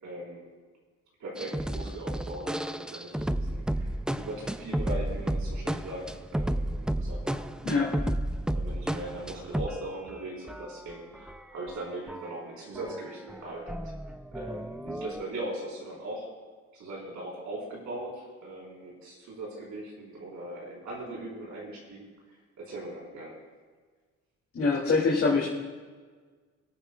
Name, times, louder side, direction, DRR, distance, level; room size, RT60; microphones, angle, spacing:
voice 1, 0.0-0.4 1.2-7.4 8.5-13.9 14.3-16.3 16.7-22.1 22.6-23.4, right 1 dB, 75° right, -4 dB, 4.1 m, -40 dB
sound 1, 1.4-9.8 10.1-10.2 10.5-12.5 12.8-15.2, right 1 dB, 5° right, 0.3 m, -33 dB
voice 2, 24.5-25.5, left 4 dB, 45° left, -5 dB, 2.4 m, -24 dB
24.0 x 8.8 x 2.3 m, 1.5 s
cardioid pair, 90°, 30 cm